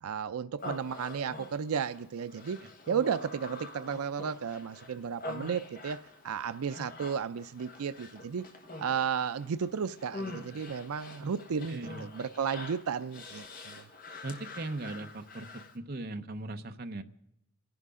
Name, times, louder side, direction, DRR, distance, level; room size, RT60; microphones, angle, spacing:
voice 1, 0.0-2.6 2.9-6.0 6.2-8.5 8.8-13.9, right 7 dB, 90° right, 0.5 m, -33 dB
Human voice, 0.6-15.8, left 2 dB, 40° left, 1.3 m, -46 dB
voice 2, 11.7-12.1 14.2-17.0, right 2 dB, 45° right, 0.8 m, -39 dB
29.0 x 11.0 x 3.7 m
head